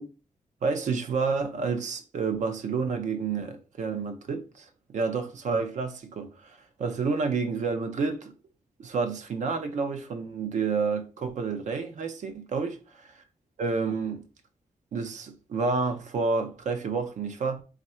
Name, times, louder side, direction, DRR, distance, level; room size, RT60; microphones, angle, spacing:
voice 1, 0.6-8.4 8.8-13.2 13.6-14.2 14.9-17.6, right 4 dB, 75° right, 0.6 m, -29 dB
3.2 x 2.5 x 4.2 m
wide cardioid pair, 105°, 13 cm